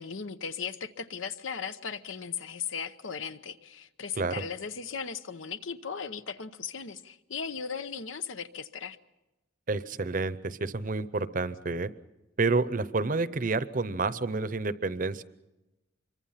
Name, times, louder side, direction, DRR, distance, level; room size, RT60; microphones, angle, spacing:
voice 1, 0.0-9.0, left 6 dB, 90° left, 12 dB, 0.9 m, -37 dB
voice 2, 9.7-11.9 12.4-15.2, right 3 dB, 45° right, 15 dB, 0.7 m, -29 dB
25.5 x 23.5 x 5.7 m, 1.0 s
head